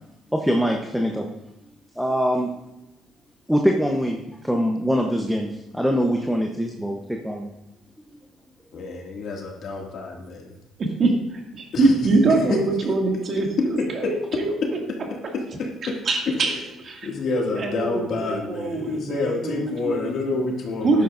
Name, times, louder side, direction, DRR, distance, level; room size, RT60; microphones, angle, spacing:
voice 1, 0.3-1.3 2.0-2.5 3.5-7.5, equal, ahead, 1 dB, 0.9 m, -23 dB
voice 2, 8.7-10.5 11.7-12.6 13.6-14.1 15.3-16.0 16.4-16.6 17.0-21.0, left 3 dB, 55° left, 0 dB, 2.2 m, -28 dB
voice 3, 11.0-14.1 14.4-14.5 16.1-16.5 16.8-17.1 17.5-20.4 20.8-21.0, right 3 dB, 45° right, 1 dB, 2.2 m, -23 dB
12.5 x 10.5 x 2.6 m, 0.93 s
cardioid pair, 120°, 0 cm